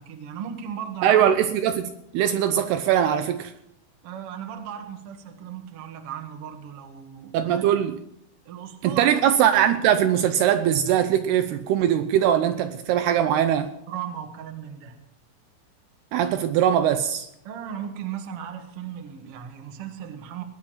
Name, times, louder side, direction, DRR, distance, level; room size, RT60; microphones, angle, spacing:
voice 1, 0.0-1.3 4.0-7.7 8.4-9.1 13.9-15.0 17.4-20.4, right 9 dB, 60° right, 1.5 m, -36 dB
voice 2, 1.0-3.5 7.3-8.0 8.8-13.7 16.1-17.3, right 10 dB, 80° right, 2.5 m, -21 dB
19.5 x 10.5 x 5.7 m
omnidirectional pair, 5.2 m